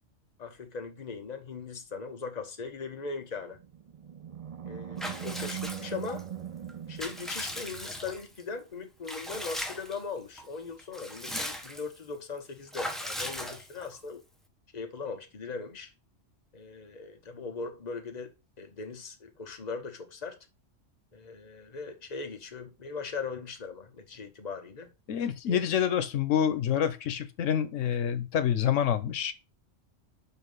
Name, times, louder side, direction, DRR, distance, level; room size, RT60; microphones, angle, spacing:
voice 1, 0.4-3.6 4.6-6.2 6.9-14.2 14.7-15.9 16.5-18.3 18.6-20.4 21.1-24.9 25.5-25.6, left 4 dB, 35° left, 1.2 m, -39 dB
Animal, 3.4-8.0, right 10 dB, 50° right, 0.4 m, -40 dB
Water / Bathtub (filling or washing) / Liquid, 5.0-6.2 6.7-8.4 9.0-10.0 10.4-10.5 10.8-12.0 12.7-14.0, equal, ahead, 1.0 m, -38 dB
voice 2, 25.1-29.3, left 9 dB, 90° left, 1.1 m, -27 dB
5.8 x 5.3 x 5.5 m
omnidirectional pair, 1.3 m